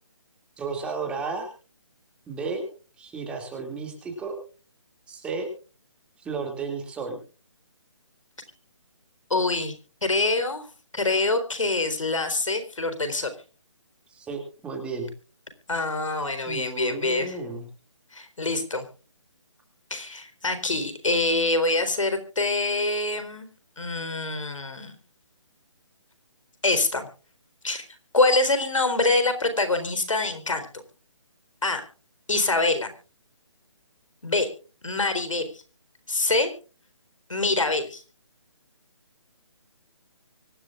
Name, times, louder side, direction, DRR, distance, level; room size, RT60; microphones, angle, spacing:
voice 1, 0.6-1.5 2.3-2.7 3.0-4.3 5.1-5.5 6.2-7.2 14.1-15.1 16.5-17.6, right 4 dB, 5° right, 3 dB, 2.4 m, -33 dB
voice 2, 9.3-9.7 10.0-10.7 10.9-13.3 15.7-17.4 18.1-18.9 19.9-23.5 23.8-24.9 26.6-27.1 27.6-27.8 28.1-30.7 31.6-31.8 32.3-32.9 34.2-34.5 34.8-35.5 36.1-36.5 37.3-38.0, left 2 dB, 90° left, 9 dB, 4.0 m, -25 dB
24.5 x 11.5 x 2.5 m, 0.37 s
hypercardioid pair, 165°, 16 cm